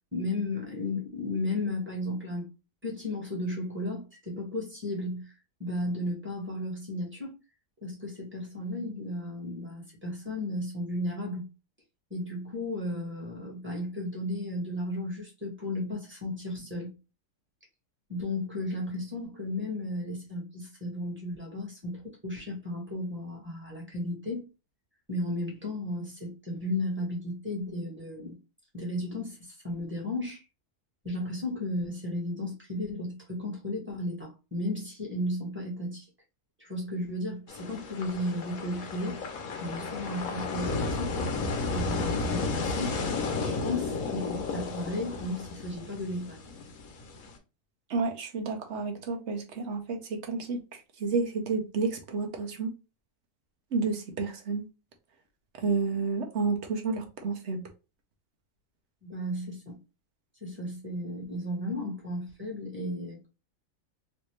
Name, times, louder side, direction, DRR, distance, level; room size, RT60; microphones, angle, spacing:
voice 1, 0.1-2.5 2.8-7.3 7.8-11.5 12.1-16.9 18.1-24.4 25.1-28.4 28.7-30.4 31.0-36.1 36.6-39.2 39.6-41.1 41.6-43.0 43.4-46.4 59.0-59.8 60.4-63.3, left 1 dB, 10° right, 1.3 m, -34 dB
sound 1, 37.5-47.3, left 3 dB, 65° left, 1.1 m, -33 dB
voice 2, 47.9-52.7 53.7-54.6 55.6-57.7, right 4 dB, 55° right, 0.9 m, -30 dB
3.3 x 2.7 x 3.1 m
omnidirectional pair, 1.7 m